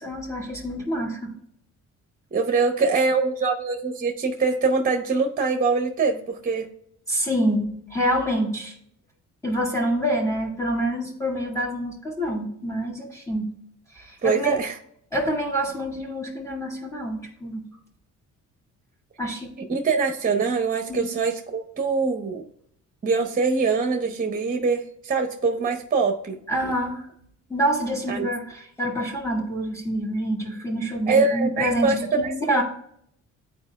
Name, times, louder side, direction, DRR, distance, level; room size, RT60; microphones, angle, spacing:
voice 1, 0.0-1.3 7.1-8.7 9.4-13.5 13.9-14.6 15.1-17.7 19.2-19.5 20.9-21.1 26.5-27.1 27.5-32.6, equal, 10° left, -1 dB, 1.9 m, -27 dB
voice 2, 2.3-6.7 14.2-14.7 19.7-22.4 23.0-26.7 28.1-28.3 31.1-32.6, right 4 dB, 30° right, 4 dB, 0.9 m, -23 dB
9.4 x 4.5 x 2.3 m, 0.70 s
cardioid pair, 90°, 30 cm